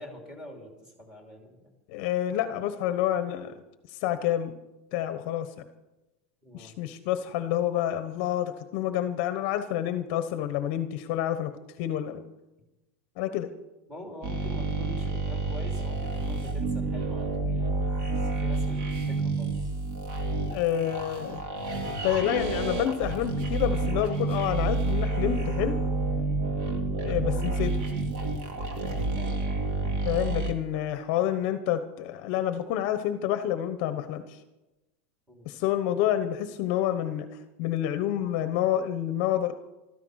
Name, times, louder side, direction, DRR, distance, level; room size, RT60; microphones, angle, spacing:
voice 1, 0.0-1.7 6.4-6.7 13.9-17.7 18.2-19.6 26.7-27.0 29.1-29.6 35.3-35.5, left 1 dB, 10° right, 1 dB, 2.9 m, -45 dB
voice 2, 1.9-3.6 3.9-4.5 4.9-5.5 6.5-11.5 11.8-12.2 13.2-13.5 20.5-21.4 21.8-25.8 27.0-27.8 30.0-34.4 35.5-39.5, left 11 dB, 40° left, 9 dB, 1.0 m, -28 dB
sound 1, 14.2-30.5, right 2 dB, 45° right, 2.4 m, -29 dB
14.5 x 13.5 x 6.4 m, 1.0 s
supercardioid pair, 175°, 7 cm